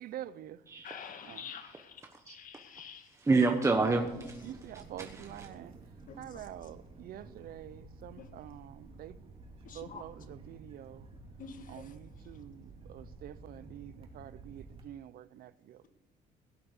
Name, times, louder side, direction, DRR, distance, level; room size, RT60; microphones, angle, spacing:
voice 1, 0.0-0.6 1.2-1.5 4.4-5.7 6.2-9.2 9.7-11.1 11.7-15.8, right 12 dB, 60° right, 0.6 m, -47 dB
voice 2, 0.8-2.0 2.3-3.1 6.1-6.4 7.2-7.3 8.2-8.3 9.6-10.0 11.4-11.9, left 6 dB, 55° left, 1.7 m, -47 dB
voice 3, 3.1-4.5 5.0-5.5, right 3 dB, 15° right, 1.1 m, -29 dB
sound 1, 3.9-14.8, right 2 dB, 35° right, 2.3 m, -52 dB
16.5 x 5.9 x 8.1 m
cardioid pair, 110°, 17 cm